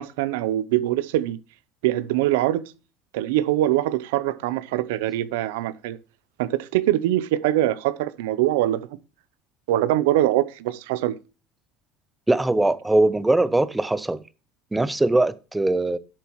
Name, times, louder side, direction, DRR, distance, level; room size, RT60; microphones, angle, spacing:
voice 1, 0.0-1.4 1.8-2.6 3.1-6.0 6.4-8.9 9.7-11.1, right 14 dB, 90° right, 0.7 m, -23 dB
voice 2, 12.3-14.2 14.7-16.0, right 2 dB, 10° right, 0.6 m, -21 dB
11.5 x 7.0 x 3.1 m
supercardioid pair, 120°, 0 cm